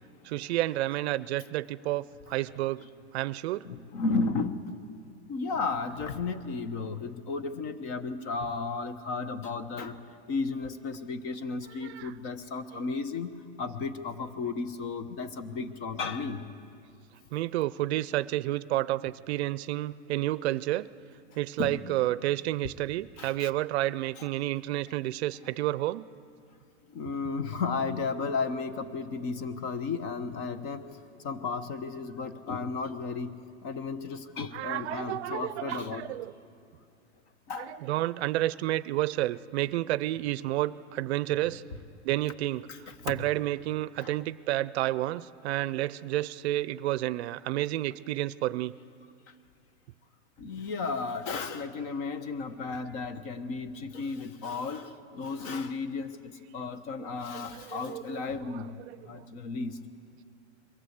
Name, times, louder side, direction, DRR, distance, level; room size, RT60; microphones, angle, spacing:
voice 1, 0.2-2.8 3.1-3.7 11.8-12.1 12.7-12.8 17.3-20.9 21.4-26.0 34.5-36.3 37.6-41.6 42.0-42.7 43.0-48.7 57.0-58.2 58.5-58.7 59.0-59.1, right 15 dB, 65° right, 18 dB, 0.5 m, -30 dB
voice 2, 3.6-4.6 5.3-10.0 10.3-16.4 21.6-21.8 23.2-23.5 24.2-24.3 26.9-30.8 31.2-33.3 33.6-36.1 37.5-37.8 42.7-42.8 44.0-44.1 50.4-56.1 56.5-58.7 59.1-59.7, left 4 dB, 40° left, 11 dB, 1.1 m, -34 dB
22.5 x 15.0 x 8.0 m, 2.4 s
supercardioid pair, 150°, 36 cm